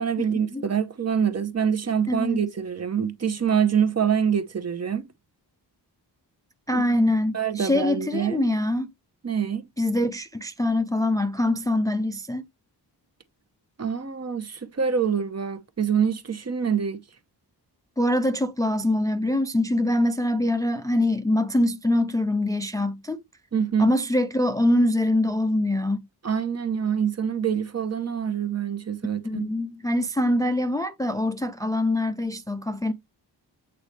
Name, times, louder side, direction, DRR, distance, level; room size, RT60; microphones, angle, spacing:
voice 1, 0.0-5.1 6.7-8.5 9.2-9.7 13.8-17.0 23.5-23.9 26.2-29.5, right 7 dB, 40° right, 0.9 m, -25 dB
voice 2, 2.1-2.4 6.7-8.9 9.8-12.5 18.0-23.2 23.8-26.0 29.2-32.9, left 1 dB, 10° left, 0.5 m, -24 dB
8.1 x 4.1 x 3.2 m
wide cardioid pair, 150°, 41 cm